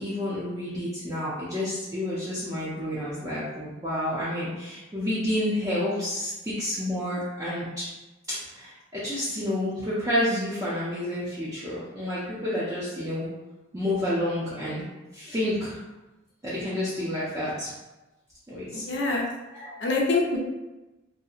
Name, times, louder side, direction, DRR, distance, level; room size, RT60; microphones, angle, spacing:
voice 1, 0.0-7.9 8.3-13.3 13.7-14.8 15.1-15.8 16.4-17.7 18.5-18.8 19.5-19.8, left 1 dB, 15° right, -10 dB, 0.5 m, -29 dB
voice 2, 18.7-19.2 19.8-20.5, left 3 dB, 60° left, -1 dB, 0.5 m, -25 dB
2.7 x 2.6 x 2.4 m, 1.1 s
head